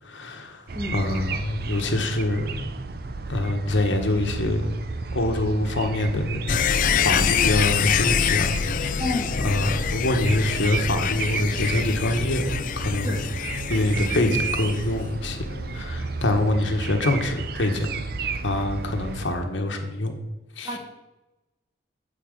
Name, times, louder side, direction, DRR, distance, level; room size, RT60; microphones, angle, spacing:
voice 1, 0.0-0.6 0.9-2.7 3.3-4.7 5.1-6.6 7.0-9.0 9.4-13.2 13.7-15.4 15.7-17.9 18.4-20.2 20.6-20.8, left 1 dB, 85° left, 5 dB, 1.2 m, -25 dB
sound 1, 0.7-19.3, right 4 dB, 50° right, 0.5 m, -33 dB
sound 2, 6.5-17.3 17.6-17.7, left 8 dB, 45° left, 0.3 m, -26 dB
voice 2, 9.0-9.3 13.0-13.2 20.6-20.8, left 2 dB, 15° right, 1 dB, 1.5 m, -29 dB
8.9 x 4.5 x 7.4 m, 1.0 s
head